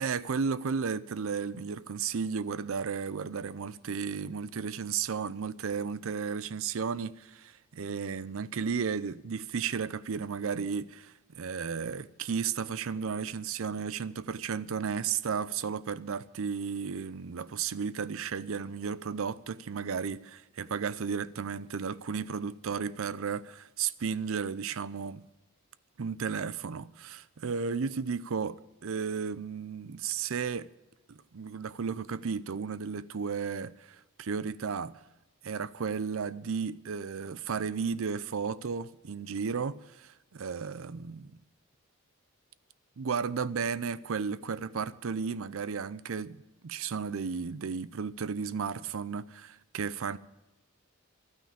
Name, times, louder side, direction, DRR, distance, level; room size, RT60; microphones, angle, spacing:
voice 1, 0.0-25.2 26.0-30.7 31.1-35.0 35.4-41.4 43.0-46.4 46.6-50.2, right 6 dB, 65° right, 0.5 m, -34 dB
12.5 x 9.2 x 8.4 m
head